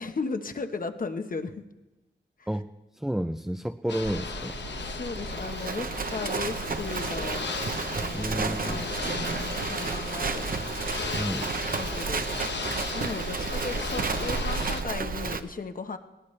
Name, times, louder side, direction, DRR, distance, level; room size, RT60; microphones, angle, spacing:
voice 1, 0.0-1.5 4.8-7.5 8.0-10.5 11.8-12.2 12.9-16.0, left 4 dB, 50° left, 7 dB, 1.1 m, -36 dB
voice 2, 2.9-4.6 8.1-8.9 11.1-11.5, equal, ahead, 8 dB, 0.5 m, -31 dB
Ocean / Boat Water vehicle, 3.9-14.8, left 5 dB, 70° left, 1.1 m, -36 dB
Livestock farm animals working animals, 4.0-15.4, right 4 dB, 50° right, 0.9 m, -32 dB
20.0 x 19.0 x 3.3 m, 1.1 s
wide cardioid pair, 90°, 19 cm